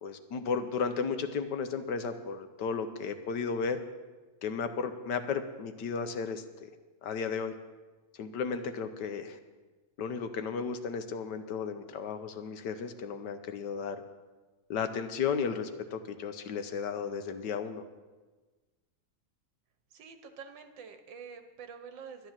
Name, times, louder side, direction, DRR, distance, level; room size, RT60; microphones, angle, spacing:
voice 1, 0.0-3.8 4.4-6.7 7.0-7.5 8.1-9.4 10.0-14.0 14.7-17.8, left 5 dB, 65° left, 10 dB, 1.3 m, -34 dB
voice 2, 19.9-22.3, right 6 dB, 65° right, 9 dB, 1.5 m, -47 dB
12.0 x 10.5 x 7.3 m, 1.3 s
omnidirectional pair, 2.3 m